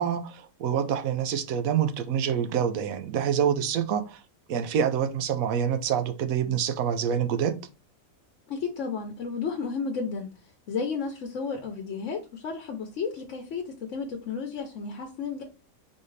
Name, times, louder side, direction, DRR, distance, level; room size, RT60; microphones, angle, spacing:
voice 1, 0.0-4.2 4.5-7.5, right 8 dB, 80° right, 1.1 m, -26 dB
voice 2, 8.5-10.4 10.7-15.4, left 5 dB, 65° left, 1.0 m, -32 dB
4.2 x 3.6 x 3.1 m
omnidirectional pair, 1.5 m